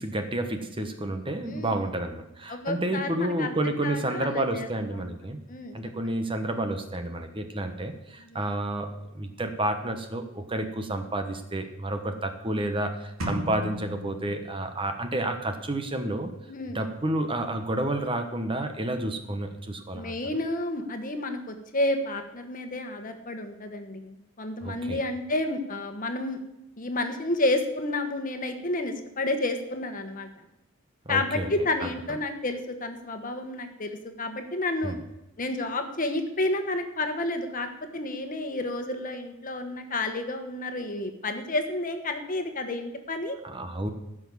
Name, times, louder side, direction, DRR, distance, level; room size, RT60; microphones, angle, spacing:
voice 1, 0.0-5.4 5.7-16.3 16.7-20.1 24.6-25.0 31.0-31.5 31.8-31.9 34.8-35.0 43.4-43.9, right 1 dB, 25° right, 7 dB, 1.1 m, -30 dB
voice 2, 1.4-1.8 2.5-4.7 5.0-5.1 5.5-5.8 8.3-8.4 16.5-16.9 19.9-26.4 26.8-30.3 31.1-35.0 35.4-37.7 37.9-43.4, left 2 dB, 40° left, 6 dB, 1.4 m, -30 dB
sound 1, 13.2-15.1, left 1 dB, 85° right, 2.7 m, -36 dB
15.5 x 6.2 x 7.0 m, 0.94 s
head